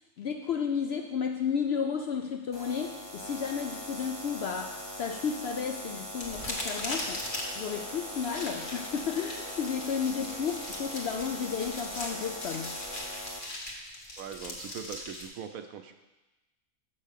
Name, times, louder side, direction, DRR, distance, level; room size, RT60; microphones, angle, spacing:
voice 1, 0.2-7.2 7.6-12.8, left 6 dB, 65° left, 3 dB, 0.6 m, -33 dB
sound 1, 2.5-13.4, equal, 20° left, 1.1 m, -41 dB
sound 2, 6.2-13.1, left 2 dB, 85° left, 1.8 m, -49 dB
sound 3, 6.2-15.3, left 1 dB, 35° left, 1.3 m, -40 dB
voice 2, 14.2-15.9, right 8 dB, 75° right, 7 dB, 1.1 m, -41 dB
6.7 x 5.6 x 6.6 m, 1.1 s
omnidirectional pair, 1.5 m